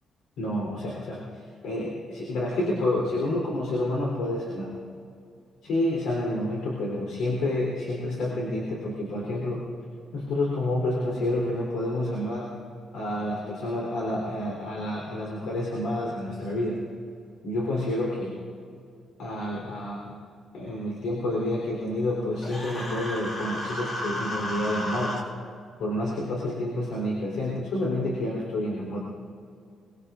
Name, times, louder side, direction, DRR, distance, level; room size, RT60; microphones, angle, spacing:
voice 1, 0.4-1.2 1.6-4.8 5.6-9.7 10.1-12.5 12.9-16.9 17.4-18.4 19.2-20.1 20.5-25.2 25.8-29.0, left 1 dB, 90° left, -2 dB, 3.6 m, -29 dB
Human voice, 22.4-25.2, left 1 dB, 35° left, 2.6 m, -33 dB
23.5 x 22.0 x 2.5 m, 2.4 s
cardioid pair, 125°, 0 cm